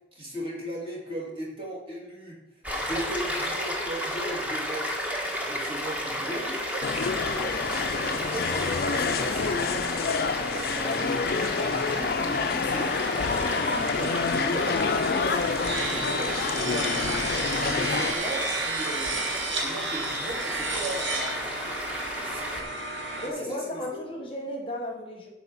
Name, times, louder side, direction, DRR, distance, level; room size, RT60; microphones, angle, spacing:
voice 1, 0.1-2.4 2.8-4.9 5.3-6.6 7.7-9.7 10.5-11.3 11.6-16.9 17.4-19.3 19.6-21.4 22.2-22.4 23.2-24.0, right 1 dB, 30° right, -3 dB, 2.5 m, -37 dB
Stream, 2.6-22.6, equal, 10° right, 1.2 m, -33 dB
sound 1, 6.8-18.2, left 5 dB, 50° left, 0.4 m, -28 dB
sound 2, 12.7-23.3, right 2 dB, 85° right, 1.7 m, -33 dB
voice 2, 23.2-25.3, left 1 dB, 30° left, 1 dB, 1.1 m, -34 dB
8.2 x 4.7 x 7.0 m, 0.95 s
head